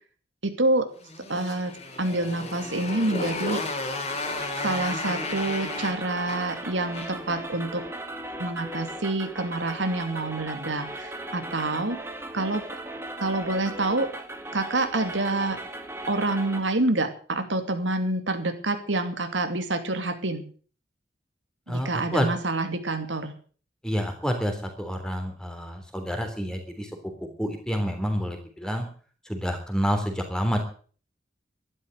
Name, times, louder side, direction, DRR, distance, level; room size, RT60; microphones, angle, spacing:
voice 1, 0.4-0.9 1.3-1.7 2.0-3.6 4.6-7.8 8.4-12.6 13.2-14.1 14.5-15.6 16.1-20.4 21.7-23.3, right 2 dB, 85° right, 7 dB, 2.7 m, -27 dB
Motorcycle, 1.0-7.3, left 3 dB, 35° left, 3.3 m, -33 dB
sound 1, 3.8-16.6, right 1 dB, 15° right, 1.9 m, -38 dB
voice 2, 21.7-22.3 23.8-26.9 27.4-28.8 29.3-30.6, equal, 5° left, 5 dB, 3.4 m, -28 dB
13.0 x 12.0 x 7.9 m, 0.43 s
head